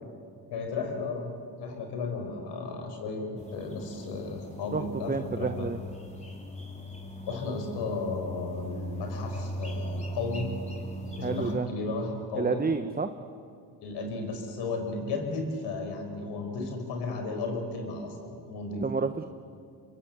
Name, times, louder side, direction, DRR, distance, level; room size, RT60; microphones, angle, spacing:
voice 1, 0.5-1.3 1.6-3.2 3.5-5.7 7.3-10.5 11.2-12.6 13.8-19.0, left 3 dB, 75° left, 4 dB, 5.5 m, -34 dB
sound 1, 3.4-11.6, equal, 15° left, 4.7 m, -38 dB
voice 2, 4.7-5.8 11.2-11.7 12.3-13.1 18.8-19.2, right 4 dB, 20° right, 8 dB, 1.1 m, -29 dB
26.0 x 23.0 x 8.1 m, 2.4 s
supercardioid pair, 65°, 41 cm